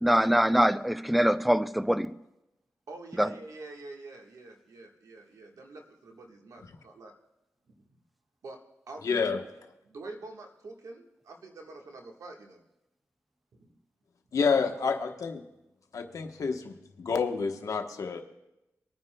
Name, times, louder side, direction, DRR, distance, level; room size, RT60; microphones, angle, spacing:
voice 1, 0.0-2.2 3.2-3.3, equal, ahead, 0.4 m, -24 dB
voice 2, 2.9-7.1 8.4-8.6 8.9-9.4 9.9-12.6 14.5-14.6, right 3 dB, 85° right, 1.4 m, -46 dB
voice 3, 9.0-9.4 14.3-15.4 15.9-18.2, left 5 dB, 75° left, 1.0 m, -29 dB
24.0 x 9.3 x 2.2 m
cardioid pair, 60°, 6 cm